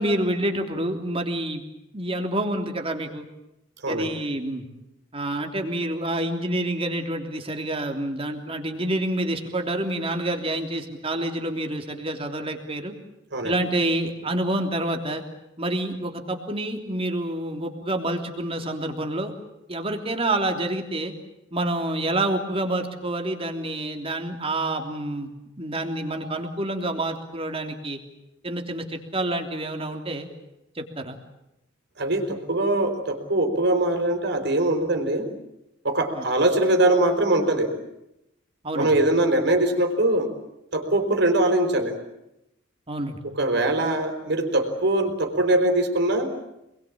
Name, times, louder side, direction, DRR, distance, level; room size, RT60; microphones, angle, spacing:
voice 1, 0.0-1.6 1.9-3.2 3.9-4.6 5.1-12.9 13.4-15.2 15.6-19.3 19.7-21.1 21.5-25.3 25.6-28.0 28.4-30.3 30.7-31.2 36.1-36.2 38.6-38.9 42.9-43.2, right 1 dB, 30° right, 4 dB, 3.2 m, -28 dB
voice 2, 32.0-35.3 35.8-37.7 38.7-40.3 40.7-42.0 43.4-46.3, right 1 dB, 60° right, 5 dB, 4.8 m, -22 dB
27.0 x 22.0 x 8.7 m, 0.88 s
head